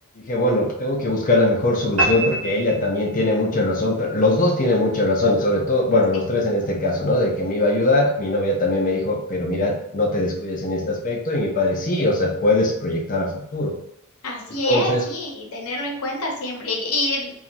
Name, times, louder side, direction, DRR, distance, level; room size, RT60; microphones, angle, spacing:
voice 1, 0.2-13.7 14.6-15.1, left 1 dB, 35° left, 1 dB, 0.5 m, -21 dB
sound 1, 2.0-3.5, right 1 dB, 80° right, 0.7 m, -25 dB
voice 2, 14.2-17.3, left 2 dB, 75° left, 0 dB, 0.8 m, -26 dB
2.9 x 2.3 x 2.5 m, 0.79 s
head